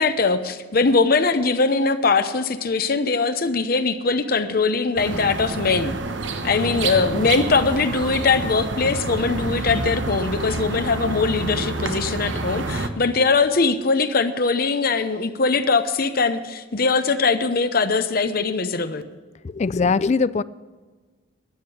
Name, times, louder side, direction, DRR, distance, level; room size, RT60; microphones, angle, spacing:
voice 1, 0.0-6.0 6.4-19.0, left 4 dB, 55° left, 0.8 m, -21 dB
sound 1, 5.0-12.9, right 2 dB, 85° right, 1.2 m, -28 dB
voice 2, 19.4-20.4, left 4 dB, 35° left, 0.4 m, -21 dB
12.5 x 9.7 x 8.4 m
head